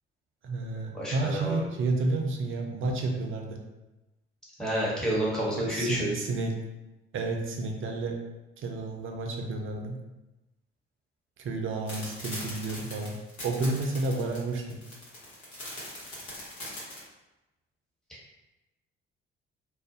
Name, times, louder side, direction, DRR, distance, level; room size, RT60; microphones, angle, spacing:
voice 1, 0.4-3.6 5.6-6.5 7.1-8.2 8.6-10.0 11.4-13.2 13.4-14.8, right 2 dB, 40° right, 2 dB, 0.5 m, -31 dB
voice 2, 0.9-1.6 4.6-6.1 18.1-18.2, equal, ahead, -7 dB, 1.1 m, -29 dB
sound 1, 11.9-17.0, left 1 dB, 60° left, 1.0 m, -41 dB
2.4 x 2.1 x 2.6 m, 1.0 s
figure-of-eight pair, 45°, 31 cm